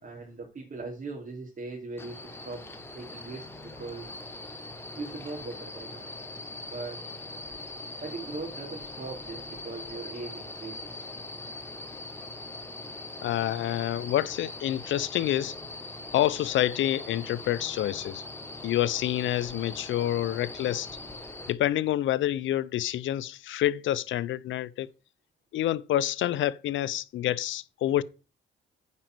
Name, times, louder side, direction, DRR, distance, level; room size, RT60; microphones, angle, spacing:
voice 1, 0.0-2.6 2.9-4.1 4.9-6.1 6.6-7.0 8.0-11.1, right 3 dB, 45° right, 3.0 m, -40 dB
sound 1, 2.0-21.5, left 2 dB, 10° left, 1.4 m, -41 dB
voice 2, 13.2-15.5 16.1-18.2 18.6-20.9 21.5-24.9 25.5-28.0, left 13 dB, 75° left, 0.6 m, -28 dB
9.5 x 5.2 x 6.1 m
cardioid pair, 90°, 20 cm